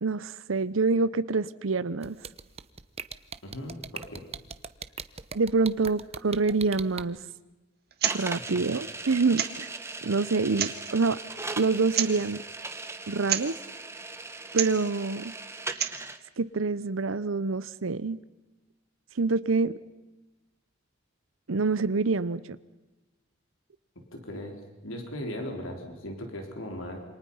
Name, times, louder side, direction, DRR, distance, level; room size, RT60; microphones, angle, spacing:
voice 1, 0.0-2.2 5.3-7.2 8.1-9.7 10.0-11.2 11.6-12.4 13.1-13.5 14.5-15.3 16.4-18.2 19.2-19.8 21.5-22.4, right 4 dB, 85° right, 15 dB, 0.8 m, -26 dB
sound 1, 2.0-7.0, right 6 dB, 30° right, 0.9 m, -38 dB
voice 2, 3.4-4.2 8.2-8.3 24.1-27.0, left 1 dB, 85° left, 3 dB, 4.0 m, -38 dB
sound 2, 7.9-8.2 8.4-8.5 9.3-9.7 10.4-10.9 11.9-12.2 13.2-13.5 14.5-14.8 15.6-16.1, right 10 dB, 55° right, 1.8 m, -29 dB
sound 3, 8.0-16.2, right 3 dB, 15° right, 1.3 m, -39 dB
28.0 x 26.0 x 5.7 m, 1.1 s
head